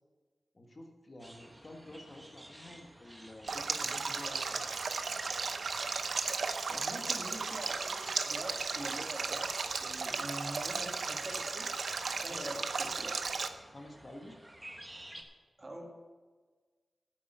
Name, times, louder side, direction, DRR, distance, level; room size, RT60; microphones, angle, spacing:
voice 1, 0.5-4.7 12.3-12.6 13.7-14.3, left 1 dB, 40° left, 3 dB, 1.5 m, -49 dB
sound 1, 1.2-15.2, right 1 dB, 15° right, 1.3 m, -54 dB
Stream, 3.5-13.5, right 4 dB, 75° right, 0.7 m, -35 dB
voice 2, 6.7-11.7 12.1-13.2 15.6-15.9, right 1 dB, 35° right, 2 dB, 1.9 m, -45 dB
8.8 x 7.7 x 8.0 m, 1.4 s
cardioid pair, 65°, 0 cm